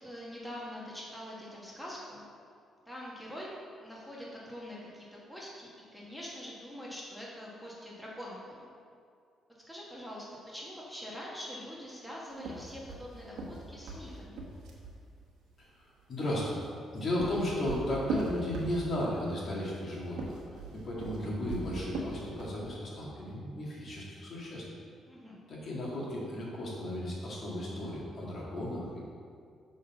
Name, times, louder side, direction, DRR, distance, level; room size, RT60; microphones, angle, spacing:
voice 1, 0.0-2.3 2.8-8.7 9.7-14.4 25.1-25.4, equal, ahead, -5 dB, 1.5 m, -44 dB
sound 1, 12.4-15.0 16.7-19.1 20.0-22.6, right 2 dB, 85° right, 1.2 m, -38 dB
voice 2, 15.6-16.6 16.9-20.4 20.7-24.7 25.5-29.0, left 1 dB, 50° left, -4 dB, 1.8 m, -35 dB
6.4 x 4.1 x 5.7 m, 2.3 s
cardioid pair, 90°, 0 cm